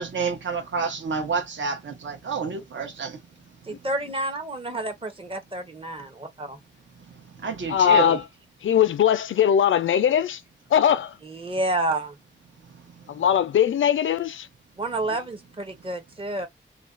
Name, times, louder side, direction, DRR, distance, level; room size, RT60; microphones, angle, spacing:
voice 1, 0.0-3.2 7.4-8.2, right 5 dB, 75° right, 0.8 m, -28 dB
voice 2, 3.6-6.1 6.4-6.5 11.2-12.2 14.8-16.5, right 2 dB, 30° right, 0.7 m, -29 dB
voice 3, 7.7-8.2 8.6-10.4 10.7-11.2 13.1-14.5, left 9 dB, 90° left, 0.4 m, -20 dB
2.4 x 2.1 x 2.4 m
wide cardioid pair, 155°, 20 cm